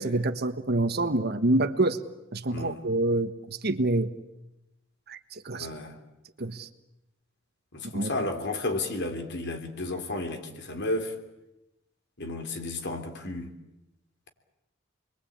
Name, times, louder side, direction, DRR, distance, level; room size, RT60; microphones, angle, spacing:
voice 1, 0.0-2.0 2.3-4.1 5.1-5.7 6.4-6.7 7.8-8.2, right 2 dB, 50° right, 9 dB, 1.4 m, -27 dB
voice 2, 5.5-5.9 7.7-11.1 12.2-13.5, left 2 dB, 60° left, 5 dB, 3.4 m, -32 dB
29.5 x 22.5 x 8.8 m, 0.93 s
head